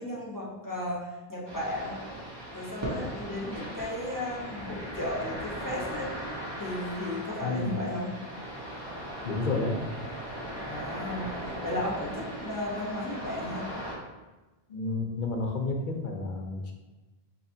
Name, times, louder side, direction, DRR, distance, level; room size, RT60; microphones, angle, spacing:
voice 1, 0.0-2.0 2.5-6.1 6.6-8.1 10.6-13.7, left 1 dB, 20° left, -5 dB, 1.0 m, -34 dB
sound 1, 1.5-13.9, right 1 dB, 25° right, 1.1 m, -38 dB
voice 2, 7.4-7.7 9.2-9.8 14.7-16.7, left 3 dB, 55° left, 2 dB, 0.8 m, -30 dB
5.8 x 2.9 x 2.7 m, 1.1 s
omnidirectional pair, 1.0 m